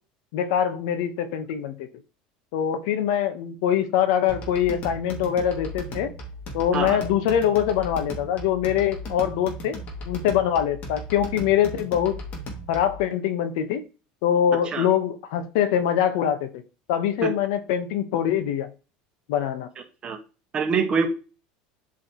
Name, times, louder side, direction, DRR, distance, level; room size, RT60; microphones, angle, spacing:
voice 1, 0.3-1.9 2.5-6.1 6.5-9.8 10.1-12.2 12.7-13.8 14.2-16.5 16.9-18.7 19.3-19.7, left 9 dB, 75° left, 9 dB, 1.2 m, -23 dB
sound 1, 4.3-13.0, equal, 45° left, 2.5 m, -36 dB
voice 2, 20.5-21.1, right 5 dB, 30° right, 5 dB, 1.6 m, -24 dB
8.3 x 5.0 x 3.1 m, 0.32 s
supercardioid pair, 120°, 3 cm